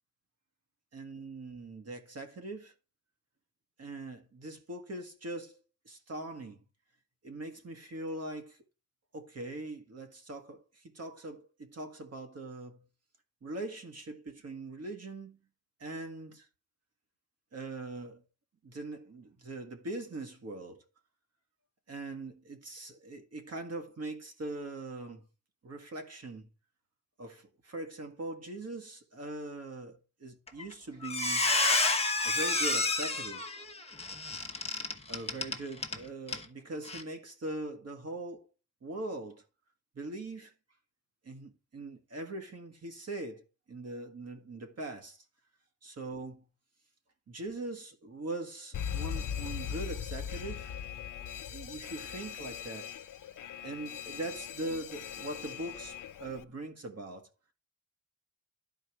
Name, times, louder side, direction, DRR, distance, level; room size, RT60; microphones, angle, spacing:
voice 1, 0.9-2.7 3.8-6.6 7.2-8.6 9.1-12.8 13.4-15.4 15.8-16.5 17.5-18.2 18.6-20.8 21.9-25.3 25.6-26.5 27.2-31.5 32.2-33.5 35.1-38.5 38.8-39.4 40.0-40.5 41.2-45.2 45.8-46.4 47.3-50.7 51.5-52.9 53.6-57.3, right 2 dB, 50° right, 1.7 m, -41 dB
Squeak, 30.5-30.7 31.0-36.0 36.3-36.5 36.9-37.0, left 3 dB, 20° left, 1.1 m, -29 dB
Alarm, 48.7-56.4, left 9 dB, 70° left, 0.6 m, -40 dB
12.0 x 4.6 x 4.6 m
wide cardioid pair, 130°, 33 cm